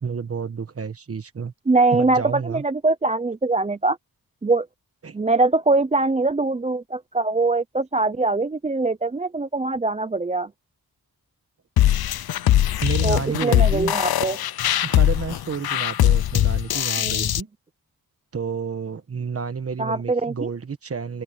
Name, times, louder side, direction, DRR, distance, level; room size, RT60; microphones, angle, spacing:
voice 1, 0.0-1.5 1.9-2.6 5.0-5.1 12.8-13.9 14.8-17.5 18.3-21.2, right 5 dB, 40° right, 1.4 m, -30 dB
voice 2, 1.7-4.0 4.4-4.7 5.1-10.5 13.0-14.4 17.0-17.2 19.8-20.5, right 3 dB, 20° right, 0.6 m, -22 dB
sound 1, 11.8-17.4, left 12 dB, 75° left, 0.6 m, -20 dB
wide cardioid pair, 170°, 37 cm